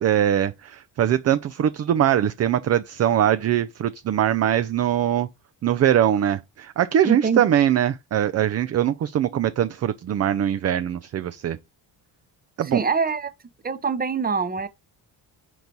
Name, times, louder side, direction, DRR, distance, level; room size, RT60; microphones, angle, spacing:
voice 1, 0.0-5.3 5.6-11.6 12.6-12.8, right 10 dB, 40° right, 0.4 m, -22 dB
voice 2, 7.0-7.4 12.7-13.3 13.6-14.7, right 5 dB, 20° right, 0.7 m, -24 dB
4.6 x 4.0 x 5.2 m
cardioid pair, 85°, 42 cm